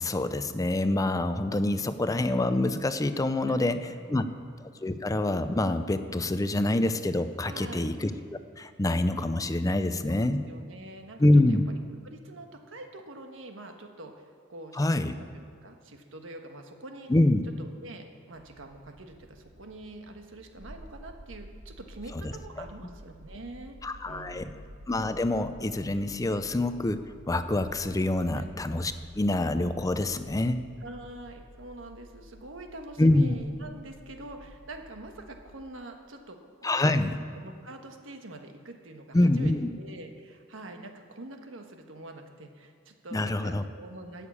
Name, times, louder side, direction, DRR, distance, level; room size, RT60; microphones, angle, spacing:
voice 1, 0.0-4.2 4.6-8.1 8.6-10.4 11.2-11.6 14.7-15.1 17.1-17.4 22.2-22.3 23.8-24.5 24.9-30.6 33.0-33.4 36.6-37.1 39.1-39.7 43.1-43.6, left 1 dB, 20° left, 10 dB, 0.5 m, -26 dB
voice 2, 3.5-4.5 7.4-7.9 10.1-11.6 12.0-14.8 15.2-17.1 17.6-23.8 24.0-24.6 28.3-28.5 30.8-37.0 37.3-44.3, right 2 dB, 90° right, 4 dB, 1.4 m, -45 dB
sound 1, 18.3-35.6, equal, 65° right, 1.1 m, -51 dB
14.0 x 6.6 x 8.4 m, 2.2 s
head